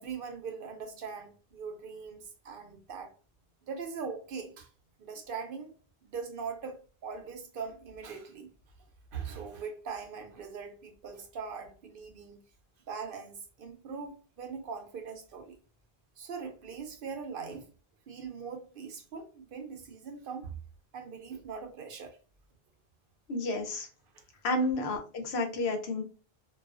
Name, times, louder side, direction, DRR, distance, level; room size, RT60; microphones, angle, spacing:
voice 1, 0.0-3.1 3.7-4.7 5.0-5.7 6.0-8.5 9.1-12.4 12.9-15.6 16.2-17.7 18.1-20.6 20.9-22.2 24.1-24.2, right 5 dB, 65° right, 0.7 m, -41 dB
voice 2, 23.3-23.9 24.4-26.0, left 2 dB, 80° left, 0.9 m, -31 dB
2.3 x 2.3 x 2.3 m
omnidirectional pair, 1.1 m